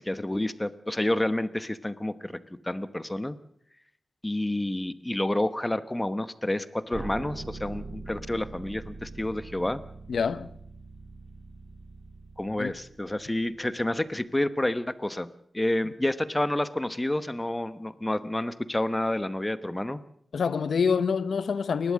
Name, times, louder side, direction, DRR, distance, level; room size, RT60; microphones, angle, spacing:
voice 1, 0.0-2.4 2.6-3.4 4.2-9.8 12.4-20.0, left 1 dB, 15° left, 0.9 m, -29 dB
sound 1, 6.9-13.8, right 3 dB, 30° right, 3.3 m, -43 dB
voice 2, 10.1-10.5 12.6-12.7 20.3-21.9, left 6 dB, 85° left, 0.8 m, -26 dB
29.0 x 12.0 x 7.5 m
wide cardioid pair, 135°, 0 cm